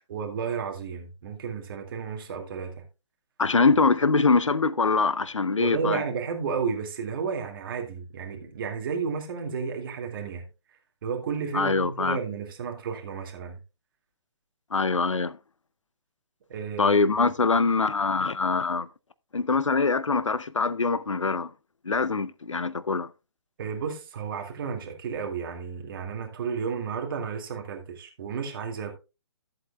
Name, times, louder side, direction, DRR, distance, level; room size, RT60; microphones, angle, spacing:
voice 1, 0.1-2.8 5.5-10.5 11.0-13.6 16.5-17.0 23.6-29.0, right 6 dB, 45° right, 2.2 m, -32 dB
voice 2, 3.4-6.0 11.5-12.2 14.7-15.4 16.8-18.9 19.3-21.5 21.8-23.1, left 4 dB, 90° left, 0.6 m, -23 dB
14.0 x 7.7 x 2.3 m
figure-of-eight pair, 140°, 15 cm